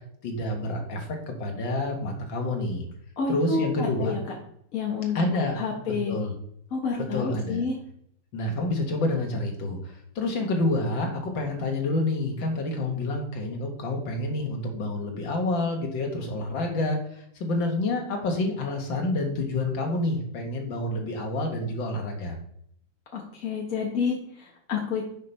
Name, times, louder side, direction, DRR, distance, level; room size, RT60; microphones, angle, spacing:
voice 1, 0.2-2.8 3.3-4.1 5.2-5.6 5.8-6.3 7.1-7.6 8.3-22.4, left 2 dB, 75° left, 2 dB, 2.2 m, -28 dB
voice 2, 3.2-4.3 4.7-5.2 5.6-6.1 6.7-7.7 23.1-25.1, left 5 dB, 50° left, -1 dB, 1.4 m, -29 dB
6.5 x 5.2 x 5.4 m, 0.70 s
omnidirectional pair, 2.1 m